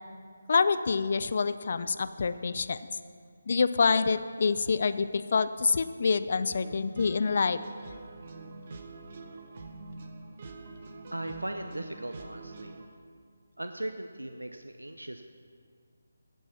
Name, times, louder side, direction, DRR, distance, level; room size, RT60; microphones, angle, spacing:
voice 1, 0.5-2.8 3.5-7.6, left 5 dB, 45° left, 13 dB, 0.4 m, -26 dB
Warm Guitar Song, 6.6-12.9, right 3 dB, 40° right, 0.8 m, -45 dB
voice 2, 11.1-12.8 13.6-15.2, right 1 dB, 80° right, 7 dB, 0.5 m, -38 dB
15.5 x 5.5 x 5.8 m, 2.1 s
figure-of-eight pair, 150°, 0 cm